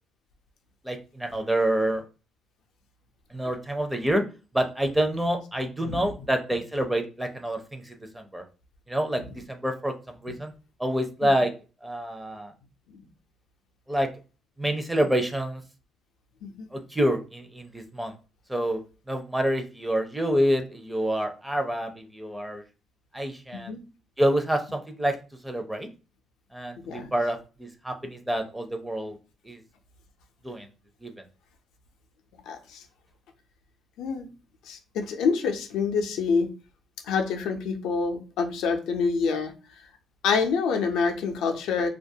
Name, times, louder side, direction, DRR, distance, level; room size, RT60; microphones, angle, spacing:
voice 1, 0.8-2.0 3.3-4.2 4.5-8.4 8.9-10.5 10.8-11.5 11.8-12.5 13.9-14.1 14.6-15.6 16.7-18.1 18.5-18.8 19.1-22.6 23.1-23.7 24.2-25.2 25.4-25.9 26.5-29.2 29.4-29.6 30.4-30.7 31.0-31.1, right 1 dB, 10° right, 6 dB, 0.5 m, -27 dB
voice 2, 32.4-32.8 34.0-34.3 34.6-36.5 37.0-39.5 40.2-41.9, left 5 dB, 90° left, 4 dB, 0.4 m, -27 dB
2.3 x 2.1 x 2.7 m, 0.33 s
cardioid pair, 90°, 0 cm